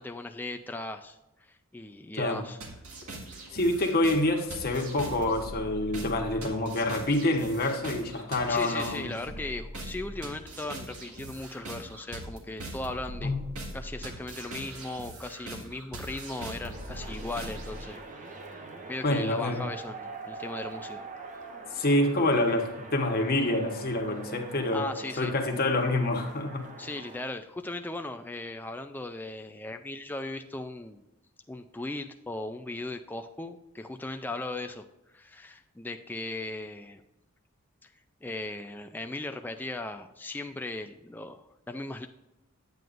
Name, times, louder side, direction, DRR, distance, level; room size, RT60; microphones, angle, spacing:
voice 1, 0.0-2.6 8.5-13.3 13.7-18.0 18.5-21.0 24.7-25.3 26.8-31.0 31.5-34.8 35.1-37.0 38.2-42.1, left 2 dB, 10° left, 6 dB, 0.3 m, -38 dB
sound 1, 2.6-17.8, right 1 dB, 85° right, 1.9 m, -41 dB
voice 2, 3.5-9.2 13.2-13.4 19.0-19.7 21.7-24.9 25.2-26.7, left 1 dB, 45° left, 3 dB, 1.2 m, -27 dB
sound 2, 16.6-27.2, right 3 dB, 35° right, 0.9 m, -44 dB
9.3 x 9.1 x 2.5 m, 0.95 s
head